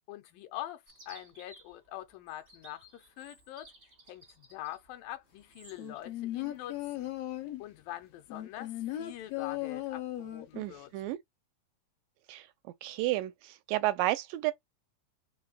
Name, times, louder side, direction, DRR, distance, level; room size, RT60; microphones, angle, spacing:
voice 1, 0.1-3.7 4.1-7.1 7.6-10.9, left 14 dB, 90° left, 2.5 m, -44 dB
Chirp tweet, 0.9-6.0, right 2 dB, 30° right, 1.6 m, -57 dB
sound 1, 5.8-7.7 8.3-10.7 11.0-11.1, left 14 dB, 75° left, 1.5 m, -37 dB
voice 2, 10.5-11.2 12.3-12.5 12.8-14.5, right 17 dB, 85° right, 2.1 m, -31 dB
4.3 x 4.2 x 2.2 m
omnidirectional pair, 3.9 m